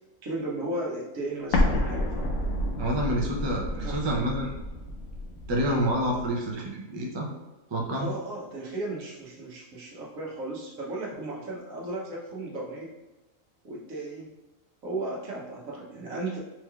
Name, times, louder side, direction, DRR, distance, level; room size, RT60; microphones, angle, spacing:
voice 1, 0.2-2.4 3.8-4.1 7.9-12.9 13.6-14.3 14.8-16.4, right 2 dB, 80° right, -3 dB, 1.3 m, -35 dB
Explosion, 1.5-6.3, left 1 dB, 80° left, 1.0 m, -29 dB
voice 2, 2.8-4.5 5.5-7.3 7.7-8.1, equal, 40° right, -1 dB, 0.4 m, -28 dB
4.3 x 3.1 x 2.3 m, 1.1 s
omnidirectional pair, 1.4 m